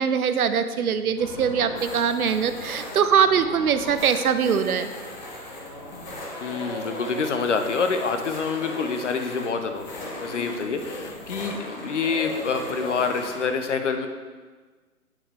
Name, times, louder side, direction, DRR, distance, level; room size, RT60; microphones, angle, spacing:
voice 1, 0.0-4.9, right 7 dB, 70° right, 10 dB, 0.6 m, -22 dB
sound 1, 1.2-13.4, left 1 dB, 30° left, 1.0 m, -37 dB
voice 2, 6.4-14.1, left 5 dB, 50° left, 6 dB, 0.7 m, -27 dB
8.7 x 4.8 x 3.4 m, 1.4 s
hypercardioid pair, 160°, 45 cm